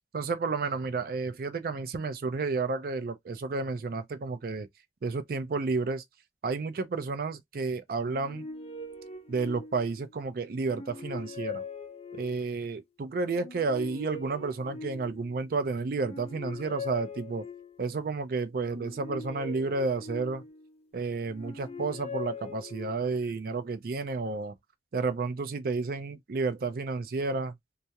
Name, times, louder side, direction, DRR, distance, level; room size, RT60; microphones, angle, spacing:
voice 1, 0.1-4.7 5.0-6.0 6.4-8.5 9.3-11.6 12.1-17.5 17.8-20.4 20.9-24.5 24.9-27.6, right 4 dB, 50° right, 0.4 m, -31 dB
sound 1, 8.0-10.1 10.6-12.6 13.3-15.4 15.9-17.9 18.6-20.8 21.3-23.3, left 3 dB, 35° left, 0.5 m, -42 dB
2.3 x 2.0 x 2.7 m
head